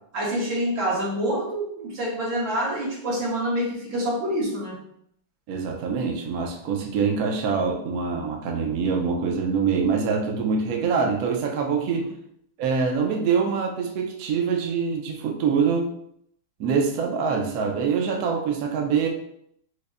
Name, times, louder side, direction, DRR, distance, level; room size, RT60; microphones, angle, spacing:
voice 1, 0.1-4.8 12.0-12.1, equal, 70° right, -5 dB, 1.8 m, -27 dB
voice 2, 5.5-12.1 12.6-15.9 16.6-19.1, right 5 dB, 85° right, 2 dB, 0.8 m, -24 dB
5.0 x 2.1 x 2.4 m, 0.72 s
omnidirectional pair, 2.3 m